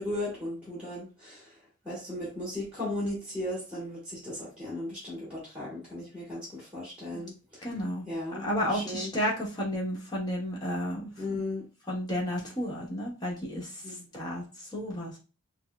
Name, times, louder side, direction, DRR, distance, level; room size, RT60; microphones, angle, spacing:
voice 1, 0.0-1.5 1.8-7.7 8.1-9.1 11.2-11.6 13.8-14.0, left 1 dB, 5° right, -7 dB, 2.0 m, -36 dB
voice 2, 7.6-8.1 8.4-11.4 11.9-13.7 14.1-14.4 14.7-15.2, equal, 20° left, -5 dB, 1.1 m, -32 dB
5.9 x 2.0 x 2.2 m, 0.32 s
head